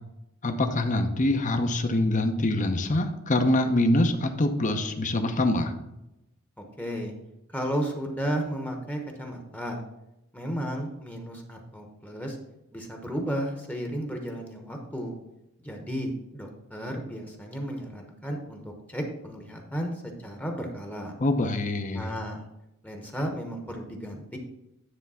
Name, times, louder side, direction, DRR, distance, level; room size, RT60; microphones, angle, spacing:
voice 1, 0.4-5.7 21.2-22.1, left 1 dB, 35° left, 7 dB, 0.8 m, -24 dB
voice 2, 6.6-7.1 7.5-9.8 10.3-12.4 12.7-15.1 15.6-21.1 21.9-22.4 22.8-24.4, equal, 10° left, 2 dB, 1.0 m, -33 dB
9.9 x 3.5 x 5.6 m, 0.89 s
head